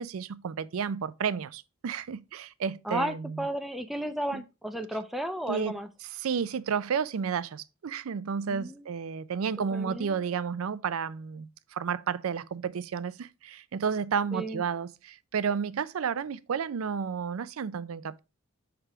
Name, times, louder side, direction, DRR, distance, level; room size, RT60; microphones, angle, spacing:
voice 1, 0.0-3.5 4.3-4.4 5.5-5.8 6.2-18.2, right 6 dB, 75° right, 0.4 m, -32 dB
voice 2, 2.8-5.9 8.5-8.8 9.6-10.2 14.3-14.6, right 1 dB, ahead, 0.6 m, -33 dB
5.8 x 3.4 x 4.8 m
head